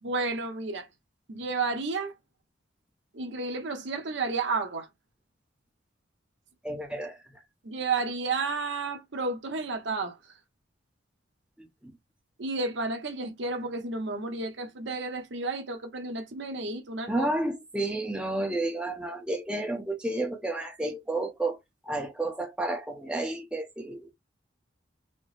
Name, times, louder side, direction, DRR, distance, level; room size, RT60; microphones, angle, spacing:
voice 1, 0.0-0.9 1.3-2.1 3.1-4.9 7.6-10.4 12.4-17.3, right 3 dB, 65° right, 0.8 m, -32 dB
voice 2, 6.6-7.2 11.6-11.7 17.1-21.6 21.9-24.1, right 2 dB, 5° right, 0.7 m, -31 dB
4.3 x 2.0 x 3.1 m
head